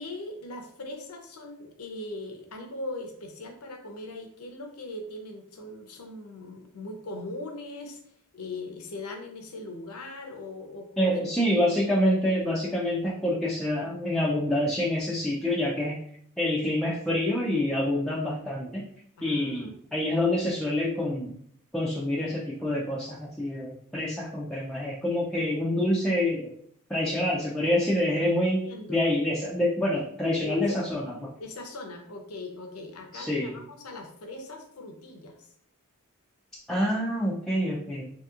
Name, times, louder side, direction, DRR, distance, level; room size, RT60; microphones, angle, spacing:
voice 1, 0.0-8.0 8.3-11.1 19.2-19.8 28.6-29.0 30.4-30.8 31.4-35.5, left 2 dB, 75° left, 4 dB, 0.6 m, -40 dB
voice 2, 11.0-16.0 16.4-18.8 19.2-21.3 21.7-26.5 26.9-28.6 28.9-31.3 33.1-33.5 36.7-38.1, left 1 dB, 5° left, -6 dB, 0.3 m, -27 dB
3.2 x 2.8 x 2.3 m, 0.66 s
head